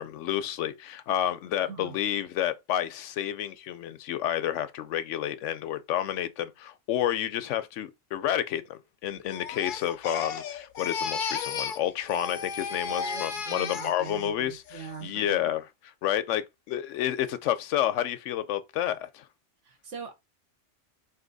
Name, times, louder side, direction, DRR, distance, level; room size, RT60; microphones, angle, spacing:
voice 1, 0.0-15.6 16.0-19.3, left 11 dB, 80° left, 0.9 m, -30 dB
voice 2, 1.6-2.0 12.9-15.5 19.6-20.1, right 6 dB, 80° right, 1.4 m, -42 dB
Crying sobbing, 9.3-11.8 12.1-14.3 14.7-15.1, left 6 dB, 55° left, 0.6 m, -34 dB
4.2 x 2.8 x 3.9 m
omnidirectional pair, 1.2 m